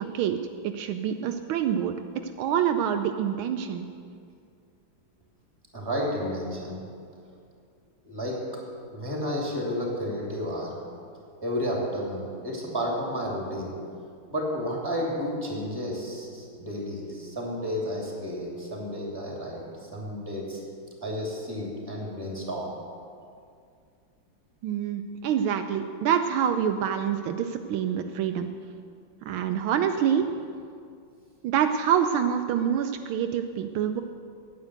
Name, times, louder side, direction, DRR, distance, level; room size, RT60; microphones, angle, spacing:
voice 1, 0.0-1.9 2.4-3.9 24.6-28.5 29.3-30.3 31.4-34.0, right 8 dB, 80° right, 7 dB, 1.4 m, -26 dB
voice 2, 5.7-6.8 8.0-8.4 8.9-10.8 11.4-13.7 14.3-20.6 21.0-22.7, equal, 10° right, -2 dB, 2.5 m, -31 dB
9.5 x 9.3 x 8.0 m, 2.3 s
omnidirectional pair, 2.2 m